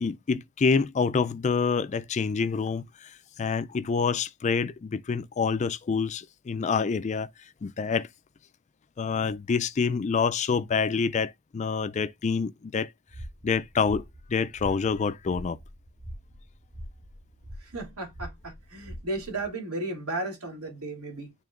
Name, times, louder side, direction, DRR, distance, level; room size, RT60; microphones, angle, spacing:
voice 1, 0.0-3.1 3.4-7.3 7.6-8.1 9.0-12.9 13.4-14.0 14.3-15.6, left 5 dB, 30° left, 0.3 m, -27 dB
sound 1, 13.1-19.5, equal, 60° right, 4.2 m, -44 dB
voice 2, 17.6-21.3, right 2 dB, 85° right, 2.7 m, -34 dB
11.0 x 3.7 x 2.4 m
head